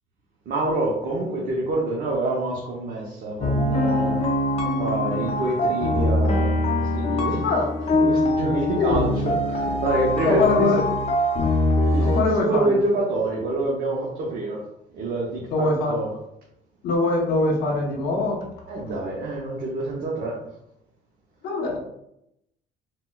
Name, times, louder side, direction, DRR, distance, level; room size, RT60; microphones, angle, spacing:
voice 1, 0.5-4.2 4.7-7.4 7.9-9.1 9.5-10.7 11.9-14.6 14.9-16.1 18.7-20.3, right 2 dB, 60° right, -4 dB, 0.8 m, -26 dB
sound 1, 3.4-12.2, left 1 dB, 40° left, 0.6 m, -23 dB
voice 2, 10.2-10.8 12.0-12.8 15.5-15.9 16.8-18.4 21.4-21.8, left 3 dB, 75° left, 1 dB, 0.8 m, -22 dB
4.1 x 2.1 x 2.2 m, 0.78 s
cardioid pair, 110°, 17 cm